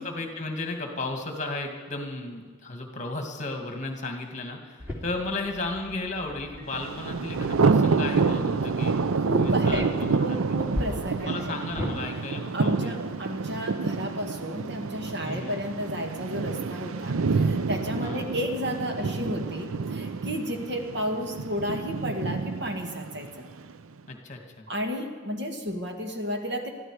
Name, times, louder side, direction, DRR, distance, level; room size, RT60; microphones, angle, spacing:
voice 1, 0.0-8.9 9.4-10.6 11.2-13.0 15.2-15.6 18.0-18.3 24.1-24.7, left 2 dB, 35° left, 3 dB, 1.9 m, -34 dB
sound 1, 4.8-11.9, left 1 dB, 10° right, 2.7 m, -39 dB
Thunder, 6.7-23.7, right 4 dB, 75° right, 0.5 m, -28 dB
voice 2, 9.3-9.9 10.2-11.6 12.5-23.5 24.7-26.7, equal, 50° right, 3 dB, 1.8 m, -32 dB
22.0 x 13.5 x 4.8 m, 1.5 s
head